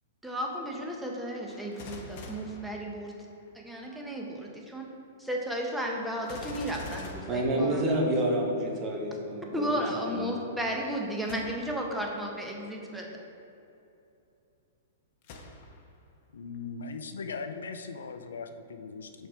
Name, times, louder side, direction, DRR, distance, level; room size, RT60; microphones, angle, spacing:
voice 1, 0.2-3.1 3.5-4.9 5.2-7.8 9.5-13.1, equal, 5° right, -1 dB, 1.0 m, -34 dB
Gunshot gunfire, 1.5-3.5 6.2-8.3 11.2-11.9 12.5-12.6 15.2-16.0 16.5-16.6, left 3 dB, 50° left, 0.9 m, -45 dB
voice 2, 7.3-10.4, right 1 dB, 30° right, -1 dB, 1.3 m, -29 dB
voice 3, 16.3-19.3, left 4 dB, 80° left, 7 dB, 0.4 m, -39 dB
5.8 x 4.3 x 4.8 m, 2.8 s
hypercardioid pair, 115°, 0 cm